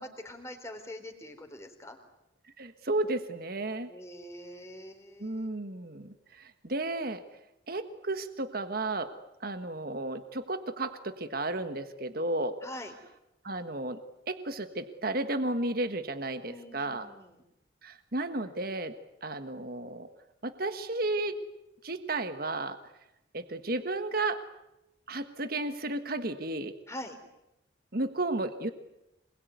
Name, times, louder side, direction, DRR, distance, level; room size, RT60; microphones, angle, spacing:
voice 1, 0.0-2.0 3.9-5.6 12.6-12.9 16.4-17.4 26.9-27.2, left 1 dB, 15° left, 4 dB, 3.9 m, -44 dB
voice 2, 2.6-3.9 5.2-7.2 7.7-9.1 9.4-12.6 13.4-14.0 14.3-17.1 17.8-18.9 19.2-20.1 20.4-21.4 21.8-22.8 23.3-24.4 25.1-26.7 27.9-28.7, right 2 dB, 50° right, 9 dB, 1.5 m, -33 dB
26.5 x 21.5 x 9.5 m, 0.89 s
head